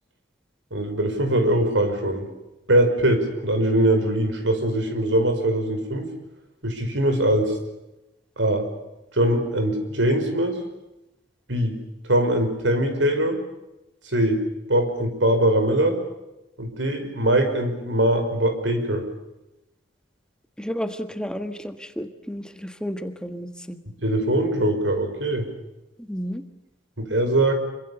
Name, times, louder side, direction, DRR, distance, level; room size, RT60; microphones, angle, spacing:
voice 1, 0.7-2.3 2.7-6.1 6.6-7.6 8.4-8.6 9.1-10.6 11.5-11.7 12.1-13.4 14.1-14.4 14.7-16.0 16.6-19.1 24.0-25.5 27.0-27.5, right 1 dB, 90° right, 7 dB, 5.6 m, -22 dB
voice 2, 20.6-23.8 26.0-26.4, equal, 5° left, 8 dB, 1.4 m, -32 dB
26.5 x 24.5 x 7.0 m, 0.97 s
head